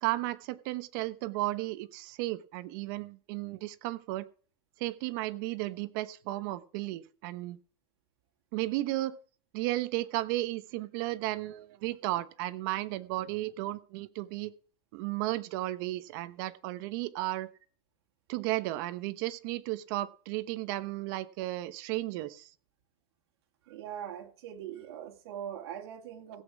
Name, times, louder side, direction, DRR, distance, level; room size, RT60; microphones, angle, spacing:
voice 1, 0.0-4.3 4.8-7.6 8.5-9.2 9.5-14.5 14.9-17.5 18.3-22.5, right 17 dB, 55° right, 0.9 m, -34 dB
voice 2, 23.7-26.4, right 9 dB, 80° right, 2.4 m, -41 dB
16.5 x 8.3 x 4.7 m
supercardioid pair, 165°, 13 cm